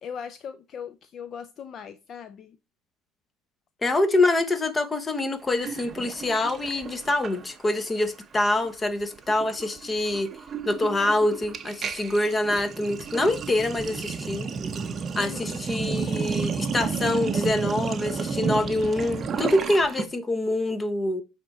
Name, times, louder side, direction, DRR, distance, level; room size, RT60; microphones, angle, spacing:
voice 1, 0.0-2.6 15.2-15.6, left 7 dB, 40° left, 0.5 m, -39 dB
voice 2, 3.8-10.3 10.7-14.5 15.2-21.2, left 2 dB, 20° left, 0.9 m, -25 dB
Sink (filling or washing), 5.6-7.8 8.1-8.4 8.6-20.1, right 5 dB, 30° right, 0.6 m, -32 dB
8.0 x 3.6 x 4.2 m
cardioid pair, 125°, 0 cm